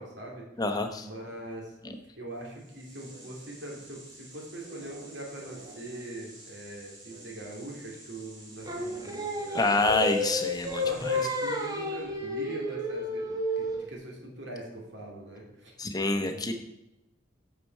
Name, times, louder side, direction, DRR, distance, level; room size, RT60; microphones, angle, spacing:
voice 1, 0.0-0.5 1.0-1.8 2.2-9.6 10.8-15.7 16.1-16.5, right 1 dB, 65° right, -1 dB, 2.7 m, -42 dB
voice 2, 0.6-1.1 1.8-1.9 9.5-11.2 15.8-16.5, left 2 dB, 20° left, 5 dB, 0.9 m, -27 dB
sound 1, 2.4-12.0, right 2 dB, 80° right, 3.4 m, -50 dB
Singing, 8.7-13.9, left 1 dB, 20° right, 1.1 m, -31 dB
8.6 x 6.8 x 4.5 m, 0.89 s
head